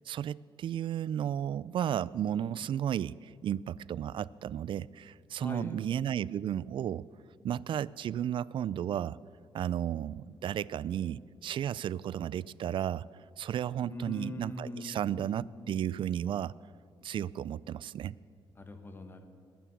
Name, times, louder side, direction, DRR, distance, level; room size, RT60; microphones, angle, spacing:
voice 1, 0.1-7.1 7.4-9.2 9.5-13.1 13.4-16.5 17.0-18.1, right 10 dB, 60° right, 21 dB, 0.3 m, -33 dB
voice 2, 5.4-5.8 13.9-15.8 18.6-19.3, left 2 dB, 25° left, 7 dB, 1.5 m, -42 dB
21.0 x 9.4 x 7.3 m, 2.2 s
cardioid pair, 130°, 10 cm